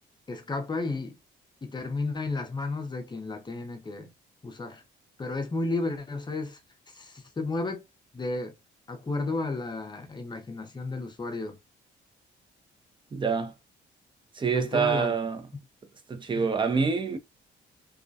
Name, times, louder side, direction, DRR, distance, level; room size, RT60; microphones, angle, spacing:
voice 1, 0.3-1.1 1.6-4.1 4.4-4.8 5.2-6.6 6.9-7.8 8.1-8.5 8.9-11.6 14.6-15.1 16.3-16.5, left 3 dB, 20° left, 0.6 m, -32 dB
voice 2, 13.1-13.5 14.3-15.4 16.1-17.2, right 5 dB, 25° right, 0.5 m, -26 dB
2.3 x 2.1 x 2.6 m
cardioid pair, 90°, 20 cm